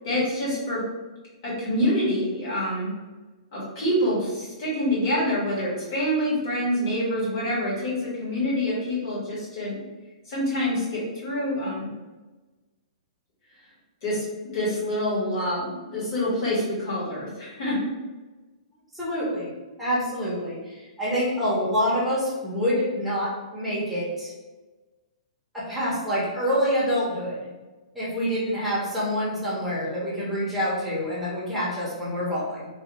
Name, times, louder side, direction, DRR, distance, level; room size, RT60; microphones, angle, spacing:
voice 1, 0.0-0.8 1.4-2.9 3.5-9.8 10.3-11.9 14.0-14.2 14.5-17.8, equal, 35° left, -7 dB, 1.4 m, -26 dB
voice 2, 18.9-19.5 19.8-24.3 25.5-27.5 27.9-32.7, equal, ahead, -9 dB, 0.8 m, -26 dB
3.3 x 2.3 x 2.9 m, 1.2 s
hypercardioid pair, 170°, 4 cm